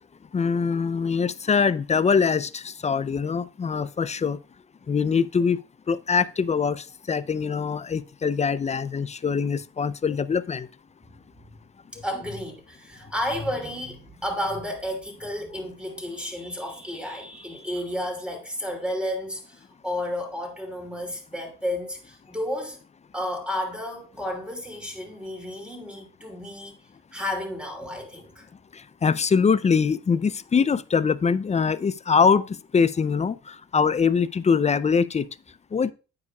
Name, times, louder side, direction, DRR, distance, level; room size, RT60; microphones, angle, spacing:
voice 1, 0.3-4.4 4.9-5.6 5.9-10.7 28.7-32.4 32.7-35.3 35.7-35.9, left 6 dB, 25° left, 0.4 m, -23 dB
voice 2, 11.9-22.8 23.1-26.7 27.1-28.5, left 1 dB, 5° right, 2.7 m, -32 dB
9.6 x 8.4 x 2.3 m
cardioid pair, 90°, 30 cm